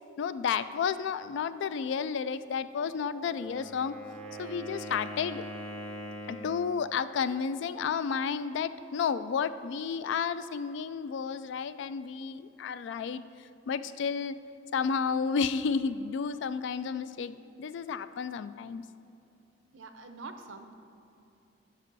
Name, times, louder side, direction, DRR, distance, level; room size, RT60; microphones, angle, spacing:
voice 1, 0.2-3.9 4.4-5.4 6.3-13.2 13.7-14.4 14.7-18.8, left 6 dB, 70° left, 14 dB, 0.3 m, -31 dB
Wind instrument woodwind instrument, 3.2-6.7, equal, 5° left, 1.1 m, -42 dB
voice 2, 19.7-20.7, right 3 dB, 85° right, 7 dB, 0.7 m, -45 dB
12.0 x 5.4 x 4.0 m, 2.8 s
head